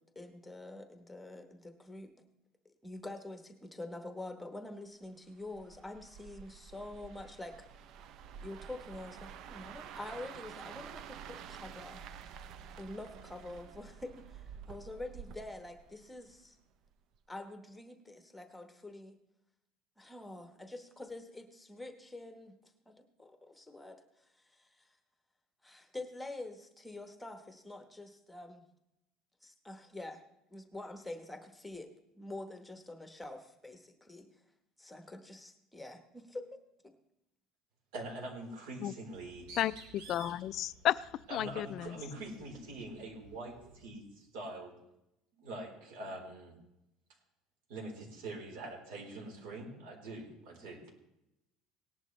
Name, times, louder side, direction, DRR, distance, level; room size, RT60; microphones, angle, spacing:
voice 1, 0.0-2.1 2.6-7.7 8.4-12.0 12.8-16.6 17.3-19.2 20.0-22.5 22.9-24.9 25.6-28.6 29.4-30.2 30.5-34.3 34.8-36.9, left 2 dB, 5° left, 6 dB, 1.0 m, -46 dB
sound 1, 5.4-16.5 16.9-17.2, right 7 dB, 45° right, 0.5 m, -50 dB
voice 2, 37.9-39.5 41.3-44.7 45.4-46.6 47.7-50.8, right 2 dB, 75° right, 0 dB, 3.8 m, -44 dB
Bird, 39.1-43.9, right 3 dB, 90° right, 2.6 m, -54 dB
voice 3, 40.1-42.0, left 12 dB, 40° left, 17 dB, 0.3 m, -33 dB
18.5 x 10.5 x 3.2 m, 0.86 s
cardioid pair, 175°, 0 cm